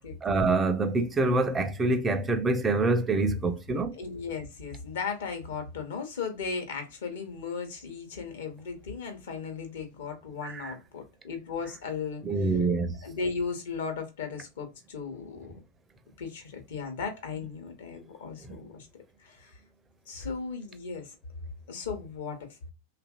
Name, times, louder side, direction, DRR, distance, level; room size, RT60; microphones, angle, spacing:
voice 1, 0.2-4.0 10.4-10.7 12.2-12.9 18.5-18.6, right 3 dB, 15° right, 0.5 m, -26 dB
voice 2, 4.0-12.5 13.0-15.5 16.2-18.9 19.2-19.6 20.1-21.1 21.7-22.5, left 5 dB, 60° left, 0.9 m, -36 dB
2.9 x 2.5 x 2.4 m
figure-of-eight pair, 90°, 0 cm